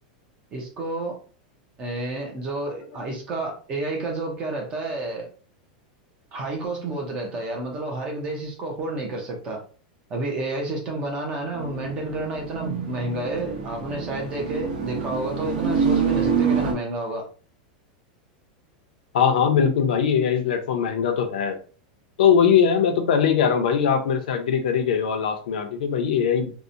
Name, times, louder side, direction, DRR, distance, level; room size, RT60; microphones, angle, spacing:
voice 1, 0.5-1.2 1.8-5.3 6.3-9.6 10.1-17.3, right 2 dB, 20° right, 1 dB, 0.5 m, -30 dB
sound 1, 11.5-16.7, right 6 dB, 80° right, 0.8 m, -26 dB
voice 2, 19.1-21.6 22.2-26.5, left 7 dB, 80° left, 6 dB, 0.6 m, -21 dB
2.7 x 2.0 x 2.5 m, 0.39 s
supercardioid pair, 175°, 5 cm